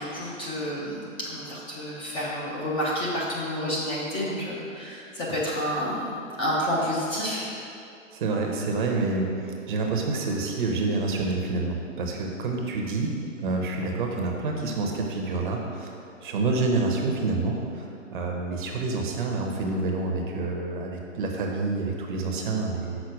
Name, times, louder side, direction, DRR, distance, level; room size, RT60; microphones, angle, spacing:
voice 1, 0.0-6.1 6.4-7.4, equal, 15° left, -6 dB, 0.7 m, -29 dB
voice 2, 8.1-13.1 13.4-23.0, right 3 dB, 40° right, 1 dB, 0.9 m, -28 dB
6.2 x 4.1 x 6.4 m, 2.6 s
hypercardioid pair, 135°, 40 cm